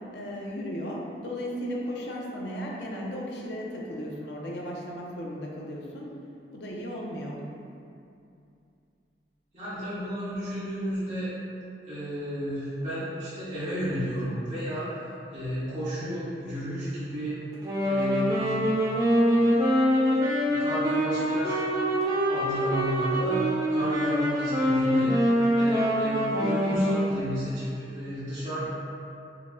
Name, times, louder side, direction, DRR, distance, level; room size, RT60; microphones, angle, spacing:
voice 1, 0.1-6.2 6.5-7.4, equal, 75° left, -2 dB, 0.6 m, -35 dB
voice 2, 9.5-11.3 11.9-15.0 15.3-17.4 17.9-18.6 20.4-21.7 22.3-28.7, equal, 45° right, -14 dB, 1.3 m, -32 dB
Wind instrument woodwind instrument, 17.5-27.2, equal, 20° right, 0.6 m, -24 dB
4.6 x 2.1 x 3.6 m, 2.5 s
head